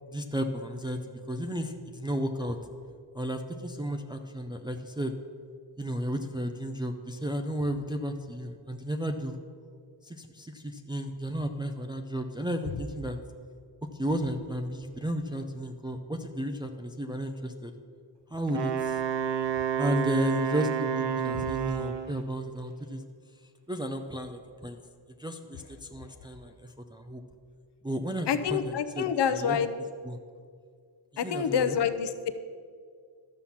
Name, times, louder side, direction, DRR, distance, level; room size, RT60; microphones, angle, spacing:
voice 1, 0.1-2.6 3.1-5.1 5.8-9.4 10.0-13.2 13.9-17.7 18.3-19.0 19.8-23.0 23.7-24.8 25.2-27.2 27.8-30.2 31.1-31.8, equal, 10° right, 4 dB, 0.4 m, -33 dB
Wind instrument woodwind instrument, 18.5-22.2, right 8 dB, 55° right, 0.9 m, -30 dB
voice 2, 28.3-29.7 31.2-32.3, left 7 dB, 55° left, 9 dB, 0.8 m, -27 dB
12.5 x 5.7 x 7.2 m, 2.1 s
wide cardioid pair, 140°, 50 cm